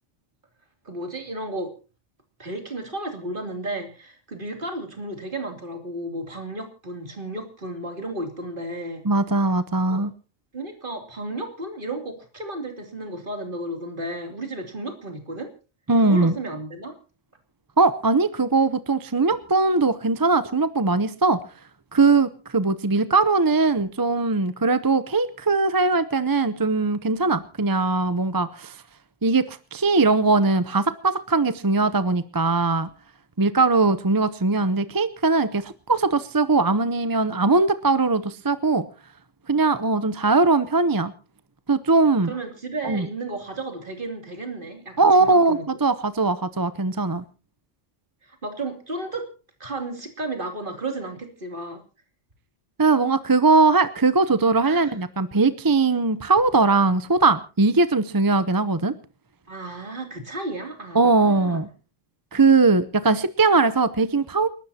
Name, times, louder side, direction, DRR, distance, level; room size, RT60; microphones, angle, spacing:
voice 1, 0.8-1.7 2.4-9.0 9.9-10.0 10.5-15.5 16.0-16.9 42.2-45.8 48.2-49.3 49.6-51.8 54.6-55.0 59.5-61.6, right 2 dB, 45° right, 5 dB, 3.1 m, -33 dB
voice 2, 9.0-10.1 15.9-16.3 17.8-21.4 21.9-28.7 29.2-32.9 33.4-38.8 39.5-41.1 41.7-42.3 42.8-43.1 45.0-47.2 52.8-58.9 60.9-61.7 62.3-64.5, right 3 dB, 25° right, 14 dB, 0.6 m, -20 dB
29.0 x 12.5 x 2.8 m, 0.34 s
omnidirectional pair, 1.3 m